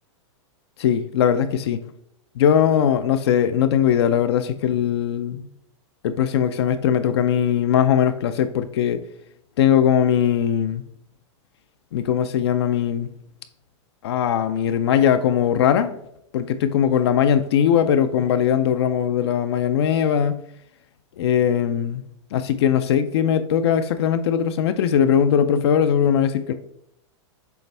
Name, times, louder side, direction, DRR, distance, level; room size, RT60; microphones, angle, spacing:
voice 1, 0.8-1.8 2.4-5.5 6.0-9.0 9.6-10.8 11.9-13.1 14.0-16.0 16.3-20.4 21.2-22.0 22.3-26.5, left 9 dB, 55° left, 0.5 m, -20 dB
6.9 x 4.0 x 3.3 m
supercardioid pair, 165°, 16 cm